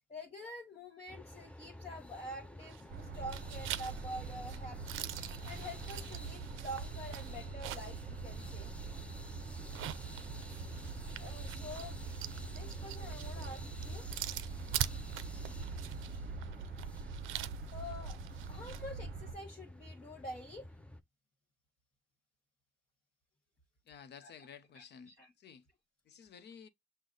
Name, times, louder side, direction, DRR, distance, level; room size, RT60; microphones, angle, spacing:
voice 1, 0.1-5.1 5.4-8.7 11.2-12.0 12.5-14.1 17.7-18.2 18.5-20.7 24.2-24.3 24.7-25.3, equal, 30° left, 1.4 m, -47 dB
sound 1, 1.1-21.0, left 1 dB, 5° left, 0.5 m, -51 dB
sound 2, 2.6-3.0 3.3-8.0 8.4-8.5 9.6-18.8, right 13 dB, 85° right, 0.5 m, -44 dB
sound 3, 2.9-19.3, right 5 dB, 55° right, 0.7 m, -44 dB
voice 2, 23.9-25.7 26.1-26.7, left 7 dB, 60° left, 0.8 m, -53 dB
6.2 x 2.1 x 3.9 m
cardioid pair, 90°, 20 cm